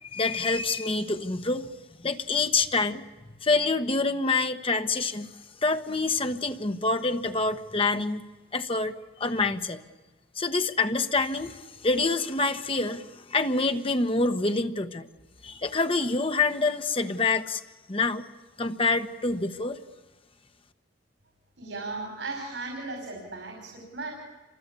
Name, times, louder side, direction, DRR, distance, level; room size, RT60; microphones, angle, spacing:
voice 1, 0.0-1.7 2.0-3.0 3.4-5.3 5.6-8.2 8.5-8.9 9.2-9.8 10.4-15.1 15.4-17.6 17.9-18.2 18.6-19.8, left 3 dB, 30° left, 8 dB, 1.3 m, -26 dB
voice 2, 21.6-24.1, right 3 dB, 80° right, 2 dB, 5.3 m, -36 dB
28.5 x 25.0 x 8.4 m, 1.2 s
head